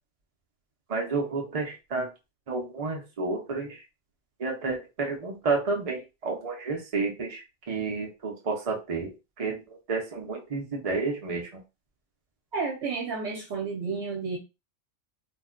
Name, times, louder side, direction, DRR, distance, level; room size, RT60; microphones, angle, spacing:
voice 1, 0.9-2.1 2.5-3.8 4.4-9.1 9.4-9.6 9.9-11.5, right 3 dB, 45° right, 1 dB, 0.4 m, -30 dB
voice 2, 12.5-14.4, right 4 dB, 65° right, -1 dB, 0.9 m, -31 dB
2.4 x 2.1 x 3.6 m, 0.27 s
omnidirectional pair, 1.3 m